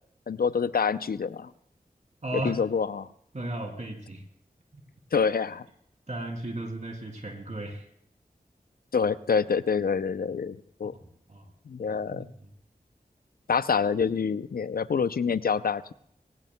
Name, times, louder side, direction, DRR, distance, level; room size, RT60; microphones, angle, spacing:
voice 1, 0.3-1.5 2.4-3.1 5.1-5.6 8.9-10.9 11.7-12.3 13.5-15.9, left 6 dB, 70° left, 15 dB, 0.5 m, -26 dB
voice 2, 2.2-2.6 3.3-4.2 4.7-4.8 6.1-7.9 10.8-11.5 11.9-12.5, right 1 dB, 50° right, 2 dB, 2.8 m, -36 dB
21.0 x 18.5 x 2.2 m, 0.69 s
wide cardioid pair, 50°, 16 cm